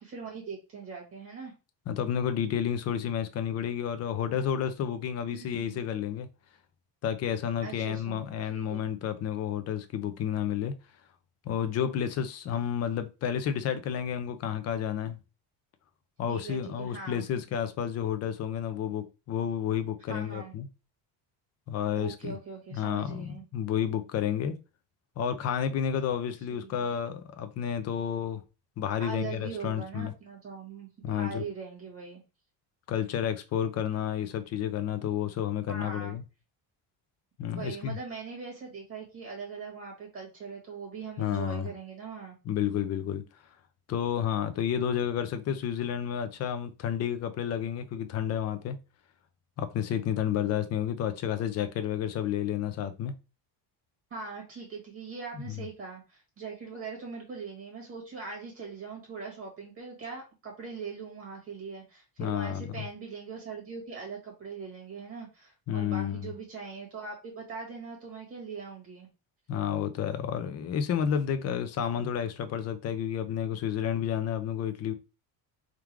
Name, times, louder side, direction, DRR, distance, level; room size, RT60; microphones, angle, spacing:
voice 1, 0.0-1.5 5.3-5.8 7.6-8.2 8.5-8.9 16.3-17.3 20.1-20.5 21.9-23.4 26.5-26.9 29.0-32.2 35.7-36.2 37.5-42.4 54.1-69.1, right 5 dB, 30° right, 1.5 m, -41 dB
voice 2, 1.9-6.3 7.0-10.7 11.4-15.2 16.2-20.7 21.7-22.4 22.7-24.6 25.2-28.4 28.8-30.1 31.0-31.5 32.9-36.2 37.4-38.0 41.2-41.7 42.4-43.2 43.9-48.8 49.6-53.1 55.5-55.7 62.2-62.9 65.7-66.3 69.5-74.9, left 9 dB, 35° left, 0.5 m, -31 dB
3.7 x 2.4 x 4.5 m
cardioid pair, 170°, 43 cm